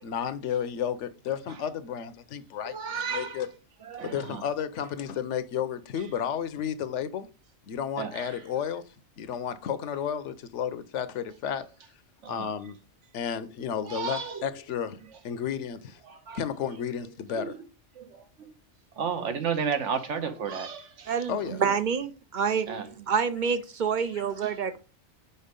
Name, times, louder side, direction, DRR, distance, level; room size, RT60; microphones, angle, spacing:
voice 1, 0.0-3.5 4.0-7.3 7.7-8.8 9.2-11.6 12.3-12.8 13.1-16.0 16.3-17.6 21.3-21.6 24.0-24.2, left 8 dB, 85° left, 1.0 m, -32 dB
voice 2, 2.6-3.4 3.8-4.4 8.0-8.4 12.2-12.5 13.9-14.4 16.1-16.4 17.3-17.6 18.0-18.5 19.0-21.1 22.7-22.9 24.4-24.5, right 6 dB, 90° right, 1.3 m, -33 dB
voice 3, 21.1-24.8, right 6 dB, 55° right, 0.6 m, -28 dB
5.5 x 4.6 x 5.1 m
omnidirectional pair, 1.2 m